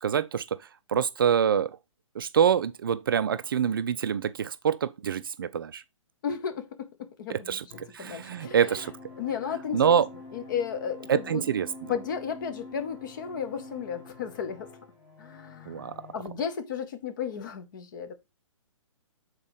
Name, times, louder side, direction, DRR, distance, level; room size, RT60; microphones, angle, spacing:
voice 1, 0.0-0.6 0.9-1.7 2.2-5.8 7.3-7.6 7.9-8.9 9.7-10.1 11.1-11.7 15.7-15.9, right 8 dB, 45° right, 0.4 m, -25 dB
voice 2, 6.2-7.6 8.0-8.9 9.2-10.0 10.3-11.4 11.9-14.7 15.2-15.7 16.1-18.1, left 7 dB, 40° left, 1.0 m, -34 dB
sound 1, 7.7-16.1, left 3 dB, 15° left, 1.4 m, -46 dB
7.2 x 4.0 x 4.7 m
figure-of-eight pair, 125°, 17 cm